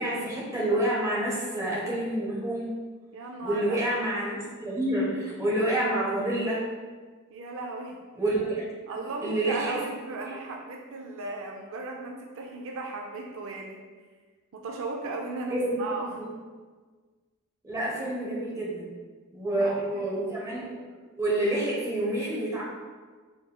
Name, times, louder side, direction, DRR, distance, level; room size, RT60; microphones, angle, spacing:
voice 1, 0.0-2.7 3.4-6.6 8.2-8.7 9.2-9.7 10.2-10.4 15.5-15.8 16.1-16.3 17.6-18.9 19.3-20.8 21.1-22.6, right 1 dB, 15° right, -6 dB, 1.0 m, -28 dB
voice 2, 3.1-3.8 7.3-8.0 8.9-13.8 14.5-16.2 19.5-20.1, right 3 dB, 65° right, 1 dB, 0.4 m, -36 dB
4.1 x 3.7 x 2.2 m, 1.4 s
head